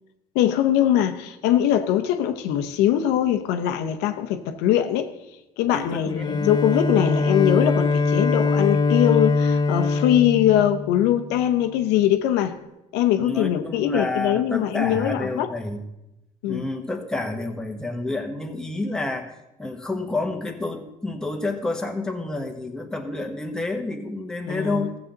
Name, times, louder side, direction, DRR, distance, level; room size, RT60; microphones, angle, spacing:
voice 1, 0.3-5.1 5.6-12.6 12.9-15.5 16.4-16.7 24.5-24.9, left 11 dB, 80° left, 0.8 m, -22 dB
voice 2, 5.7-6.5 13.2-15.8 16.4-25.0, left 2 dB, 5° left, 1.3 m, -29 dB
Bowed string instrument, 6.1-11.3, left 4 dB, 25° left, 0.6 m, -22 dB
14.0 x 7.3 x 3.9 m
supercardioid pair, 90°, 17 cm